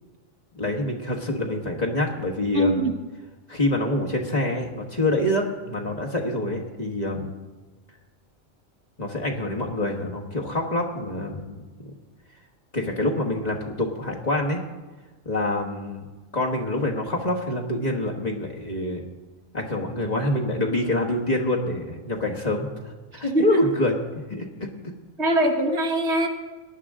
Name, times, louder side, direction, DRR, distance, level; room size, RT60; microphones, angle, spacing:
voice 1, 0.5-2.9 3.5-7.3 9.0-11.9 12.7-14.6 15.2-16.0 16.3-19.0 19.5-23.9 24.3-24.7, left 1 dB, 30° left, -1 dB, 1.5 m, -26 dB
voice 2, 2.5-2.9 23.2-23.6 25.2-26.3, right 1 dB, 55° right, 4 dB, 1.4 m, -22 dB
19.0 x 10.5 x 3.7 m, 1.3 s
omnidirectional pair, 1.4 m